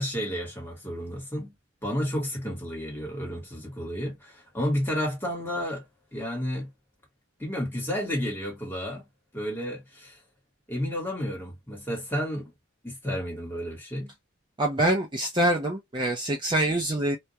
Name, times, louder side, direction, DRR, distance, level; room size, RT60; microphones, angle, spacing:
voice 1, 0.0-1.5 1.8-5.8 6.1-6.7 7.4-9.1 9.3-10.2 10.7-12.5 12.8-14.1, equal, 10° left, 1.1 m, -31 dB
voice 2, 14.6-17.2, right 1 dB, 20° right, 0.5 m, -25 dB
2.3 x 2.1 x 2.7 m
head